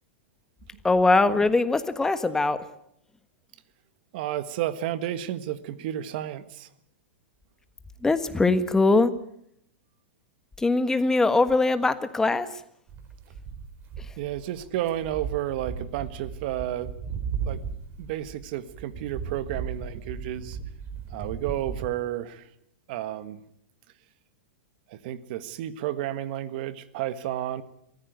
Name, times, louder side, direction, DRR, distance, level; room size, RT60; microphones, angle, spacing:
voice 1, 0.8-2.6 8.0-9.1 10.6-12.6 14.0-14.1, left 3 dB, 10° left, 11 dB, 1.5 m, -22 dB
voice 2, 4.1-6.7 14.2-16.9 17.4-17.6 18.0-20.6 21.1-22.5 22.9-23.4 24.9-27.6, right 12 dB, 55° right, 14 dB, 1.5 m, -31 dB
sound 1, 12.9-21.9, right 6 dB, 35° right, 4.3 m, -36 dB
23.0 x 15.0 x 9.3 m, 0.75 s
hypercardioid pair, 120°, 6 cm